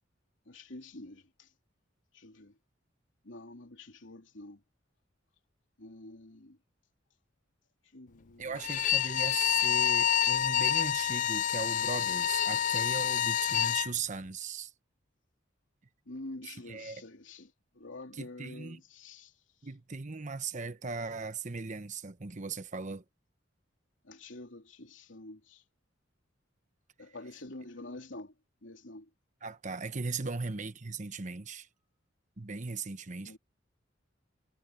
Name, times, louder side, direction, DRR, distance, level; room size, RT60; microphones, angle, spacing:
voice 1, 0.5-1.5 2.1-2.5 3.2-4.6 5.8-6.6 7.9-8.6 9.0-9.1 16.1-19.3 24.0-25.6 27.0-28.3 28.6-29.1 33.2-33.4, left 2 dB, 75° left, 3.0 m, -47 dB
voice 2, 8.4-14.7 16.4-17.0 18.1-18.8 19.6-23.0 29.4-31.7 32.4-33.4, right 4 dB, 40° right, 1.0 m, -38 dB
Bowed string instrument, 8.6-13.9, left 9 dB, 40° left, 0.3 m, -28 dB
head